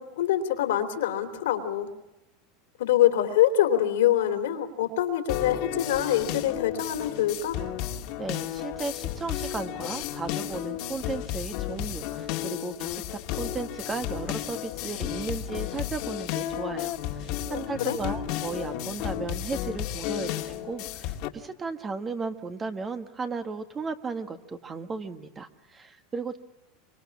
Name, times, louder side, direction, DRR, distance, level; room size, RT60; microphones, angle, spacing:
voice 1, 0.0-1.9 2.8-7.6 17.5-18.0, left 11 dB, 90° left, 7 dB, 3.2 m, -25 dB
sound 1, 5.3-21.3, left 12 dB, 60° left, 2.0 m, -33 dB
voice 2, 8.2-16.9 17.2-26.4, right 4 dB, 20° right, 9 dB, 1.5 m, -35 dB
26.0 x 25.0 x 7.2 m, 0.99 s
supercardioid pair, 130°, 0 cm